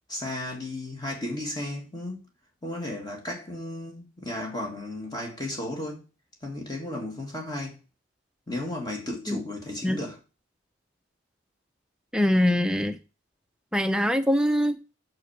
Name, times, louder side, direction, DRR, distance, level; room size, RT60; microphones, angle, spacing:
voice 1, 0.1-2.3 2.6-6.0 6.4-7.8 8.5-10.2, left 1 dB, 20° left, 1.9 m, -34 dB
voice 2, 12.1-13.0 13.7-14.8, equal, 5° right, 0.5 m, -23 dB
6.4 x 6.1 x 5.8 m
head